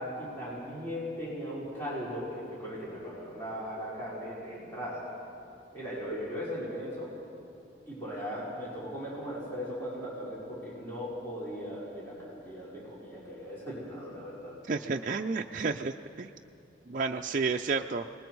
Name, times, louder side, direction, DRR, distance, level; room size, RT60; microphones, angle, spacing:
voice 1, 0.0-5.0 5.7-7.1 7.9-14.5, equal, 15° left, -9 dB, 5.1 m, -38 dB
voice 2, 14.7-16.3 16.9-18.1, right 4 dB, 40° right, 3 dB, 0.4 m, -31 dB
28.5 x 20.0 x 4.7 m, 2.6 s
head